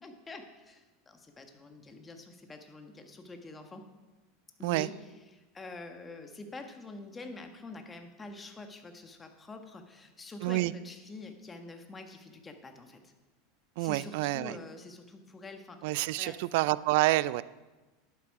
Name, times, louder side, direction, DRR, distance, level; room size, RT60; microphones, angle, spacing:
voice 1, 0.0-3.8 4.6-13.1 13.8-16.4, left 2 dB, 20° left, 6 dB, 1.4 m, -46 dB
voice 2, 13.8-14.5 15.8-17.4, right 19 dB, 65° right, 18 dB, 0.3 m, -28 dB
11.0 x 8.4 x 4.7 m, 1.2 s
hypercardioid pair, 90°, 0 cm